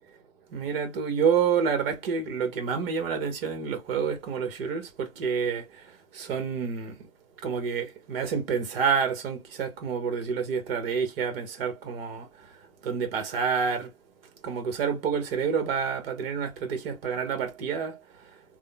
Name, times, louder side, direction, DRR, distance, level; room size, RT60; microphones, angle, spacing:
voice 1, 0.5-7.1 7.4-12.3 12.8-13.9 14.4-18.0, right 6 dB, 45° right, 1.1 m, -28 dB
3.5 x 2.2 x 2.2 m
hypercardioid pair, 135°, 40 cm